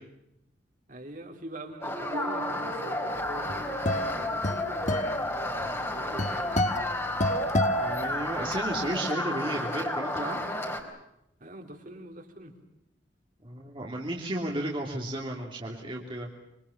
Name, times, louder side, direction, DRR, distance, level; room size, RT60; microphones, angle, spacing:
voice 1, 0.9-7.0 11.4-12.5, right 1 dB, 45° right, 3 dB, 4.0 m, -44 dB
sound 1, 1.8-10.8, left 1 dB, 15° left, 3.7 m, -32 dB
sound 2, 2.1-5.5, right 1 dB, 70° right, 1.8 m, -41 dB
sound 3, 3.2-8.7, left 1 dB, 40° left, 1.5 m, -30 dB
voice 2, 7.7-10.4 13.4-16.3, right 1 dB, 30° right, -1 dB, 3.0 m, -33 dB
26.0 x 24.5 x 7.1 m, 0.85 s
head